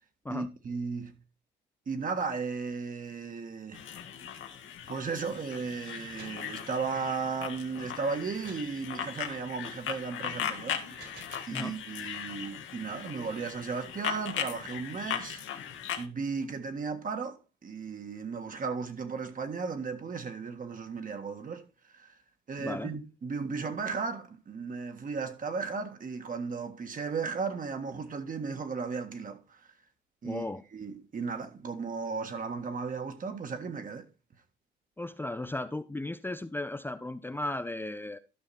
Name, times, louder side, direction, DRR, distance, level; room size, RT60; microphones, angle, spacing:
voice 1, 0.3-1.2 1.9-3.8 4.9-11.2 11.5-15.4 16.0-22.2 22.5-29.7 30.2-34.1, right 5 dB, 45° right, 1.6 m, -35 dB
sound 1, 3.7-16.1, left 9 dB, 75° left, 1.6 m, -38 dB
sound 2, 6.2-6.5 8.4-8.8 10.7-11.6, right 4 dB, 65° right, 4.2 m, -50 dB
voice 2, 22.6-22.9 30.2-30.6 35.0-38.2, left 2 dB, 10° left, 0.6 m, -35 dB
12.5 x 5.8 x 4.2 m
cardioid pair, 90°, 20 cm